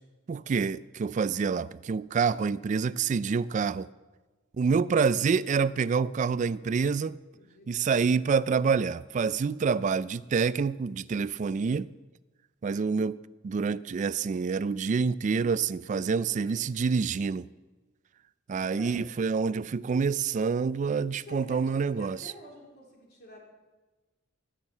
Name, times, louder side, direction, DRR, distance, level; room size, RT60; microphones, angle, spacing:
voice 1, 0.3-3.9 4.6-7.2 7.7-11.9 12.6-13.2 13.4-17.5 18.5-22.2, right 5 dB, 40° right, 0.3 m, -27 dB
voice 2, 7.3-8.1 16.0-16.7 18.7-19.1 21.2-23.4, left 1 dB, 55° left, 3.5 m, -50 dB
12.0 x 7.3 x 8.1 m
head